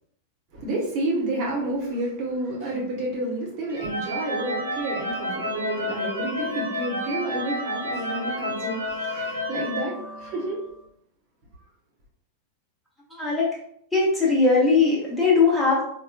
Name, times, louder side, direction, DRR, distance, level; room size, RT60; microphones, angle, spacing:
voice 1, 0.5-10.6, right 1 dB, 40° right, -3 dB, 0.9 m, -30 dB
sound 1, 3.7-10.7, left 1 dB, 90° right, 0.5 m, -30 dB
voice 2, 13.2-13.5 13.9-15.8, left 4 dB, 5° left, -5 dB, 1.1 m, -19 dB
4.2 x 2.1 x 2.3 m, 0.68 s
figure-of-eight pair, 90°, 0 cm